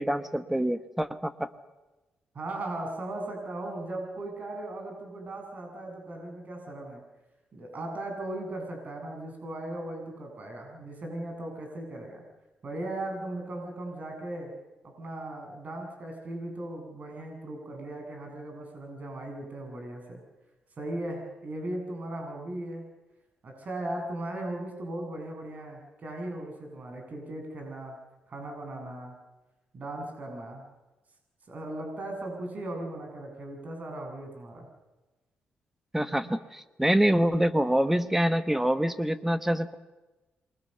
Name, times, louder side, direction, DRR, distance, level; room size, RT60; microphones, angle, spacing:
voice 1, 0.0-1.5 35.9-39.7, right 1 dB, 5° right, 11 dB, 1.2 m, -26 dB
voice 2, 2.3-7.0 7.5-12.2 12.6-14.5 14.8-20.2 20.8-22.9 23.4-28.0 28.3-29.1 29.7-30.6 31.5-34.7, right 1 dB, 45° right, 2 dB, 7.7 m, -37 dB
28.0 x 23.5 x 6.8 m, 1.1 s
cardioid pair, 90°, 4 cm